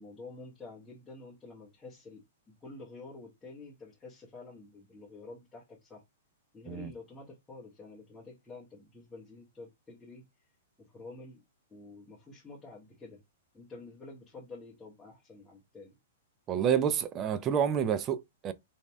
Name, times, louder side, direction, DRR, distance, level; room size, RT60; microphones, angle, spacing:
voice 1, 0.0-6.0 6.5-10.2 10.8-11.4 11.7-13.2 13.5-15.9, left 3 dB, 10° left, 1.1 m, -49 dB
voice 2, 16.5-18.5, right 8 dB, 25° right, 0.3 m, -29 dB
2.9 x 2.7 x 2.2 m
hypercardioid pair, 135°, 0 cm